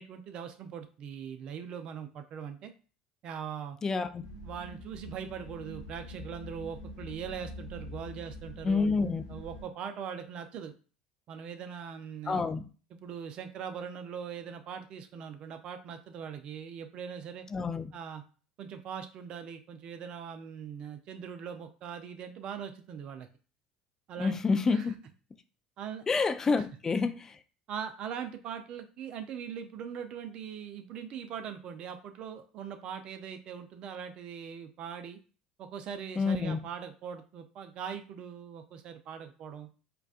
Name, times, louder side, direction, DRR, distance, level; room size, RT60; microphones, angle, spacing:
voice 1, 0.0-2.7 3.2-3.8 4.4-10.7 11.3-12.4 12.9-17.5 17.9-18.2 18.6-23.3 24.1-24.4 24.7-24.9 25.8-26.0 26.6-26.7 27.7-35.2 35.6-39.7, right 7 dB, 50° right, 0.6 m, -41 dB
voice 2, 3.8-4.2 8.6-9.2 12.3-12.7 17.5-17.9 24.2-24.9 26.1-27.3 36.2-36.7, left 4 dB, 25° left, 0.4 m, -28 dB
sound 1, 4.2-9.7, left 1 dB, 80° left, 0.7 m, -45 dB
4.6 x 2.3 x 2.4 m
hypercardioid pair, 70°, 2 cm